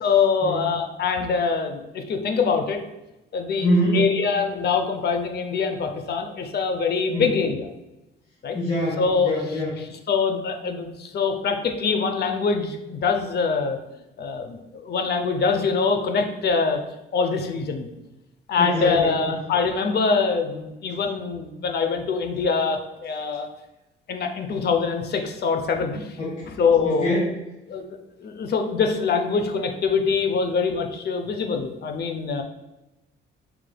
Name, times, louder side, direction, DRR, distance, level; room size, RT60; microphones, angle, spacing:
voice 1, 0.0-2.8 3.3-7.7 8.4-8.6 9.0-13.8 14.2-16.8 17.1-17.9 18.5-23.5 24.1-26.2 26.4-27.2 27.7-27.8 28.2-32.4, left 5 dB, 55° left, 5 dB, 0.6 m, -24 dB
voice 2, 3.6-4.0 7.1-7.2 8.5-9.7 18.6-19.1 26.2-26.4 26.8-27.3, equal, 35° left, -7 dB, 1.2 m, -24 dB
4.5 x 3.3 x 2.2 m, 0.96 s
cardioid pair, 90°, 20 cm